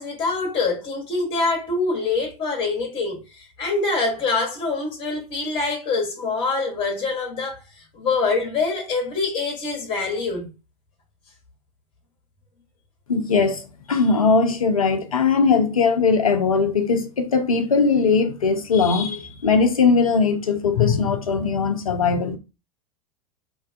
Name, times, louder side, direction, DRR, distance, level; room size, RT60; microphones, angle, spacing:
voice 1, 0.0-10.5, left 3 dB, 30° left, 0.9 m, -25 dB
voice 2, 13.1-22.4, left 5 dB, 75° left, 0.5 m, -20 dB
2.6 x 2.2 x 2.4 m
figure-of-eight pair, 80°, 18 cm